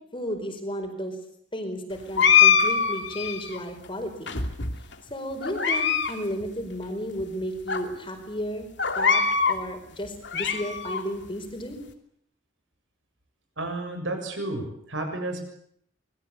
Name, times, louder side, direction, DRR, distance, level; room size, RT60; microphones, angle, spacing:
voice 1, 0.1-1.2 1.5-4.4 5.1-11.8, equal, 25° left, 6 dB, 4.9 m, -33 dB
sound 1, 2.2-3.6 4.3-4.9 5.4-6.1 6.4-6.5 7.2-7.3 7.7-7.8 8.8-9.6 10.1-11.0, left 7 dB, 60° left, 2.9 m, -22 dB
voice 2, 13.6-15.4, right 2 dB, 70° right, 6 dB, 7.2 m, -31 dB
26.0 x 21.5 x 8.7 m, 0.69 s
head